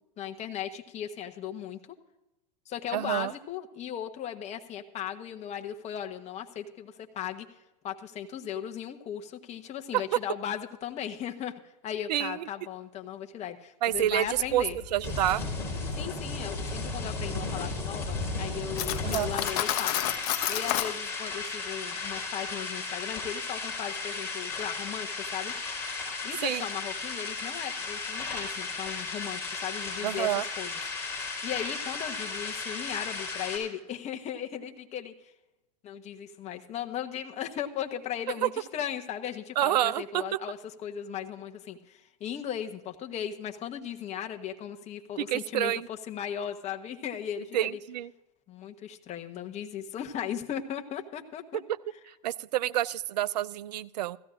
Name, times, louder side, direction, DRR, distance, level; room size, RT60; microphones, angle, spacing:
voice 1, 0.2-1.8 2.7-7.5 7.8-14.8 15.9-20.0 20.5-25.5 26.2-30.3 30.6-30.7 31.1-35.3 35.8-47.8 48.5-51.6, left 9 dB, 30° left, 5 dB, 1.1 m, -37 dB
voice 2, 2.9-3.3 9.9-10.0 12.1-12.5 13.8-14.6 14.9-15.4 19.0-19.3 26.4-26.7 30.0-30.4 38.4-38.5 39.6-40.4 45.2-45.9 47.5-48.1 52.1-54.2, right 13 dB, 75° right, 17 dB, 0.5 m, -28 dB
sound 1, 13.9-33.6, left 3 dB, 10° left, 4.6 m, -35 dB
Cutlery silverware, 18.8-20.9, left 14 dB, 60° left, 0.9 m, -30 dB
17.0 x 14.5 x 2.5 m, 0.96 s
hypercardioid pair, 110°, 21 cm